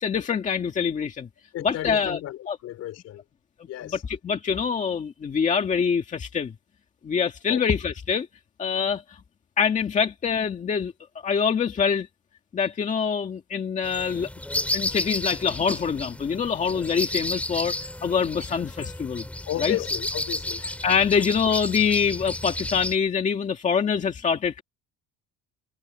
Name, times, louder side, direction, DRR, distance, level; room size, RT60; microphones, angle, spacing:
voice 1, 0.0-1.3 1.6-2.2 2.5-2.6 3.8-6.5 7.0-8.3 8.6-9.2 9.6-10.9 11.2-12.1 12.5-14.3 14.7-17.7 18.0-19.2 19.6-19.8 20.8-24.6, left 6 dB, 20° left, 1.9 m, -25 dB
voice 2, 1.5-3.2 3.7-4.0 7.5-7.6 19.5-20.8, left 13 dB, 50° left, 3.5 m, -33 dB
sound 1, 13.8-23.0, left 1 dB, 5° left, 2.4 m, -32 dB
cardioid pair, 170°, 33 cm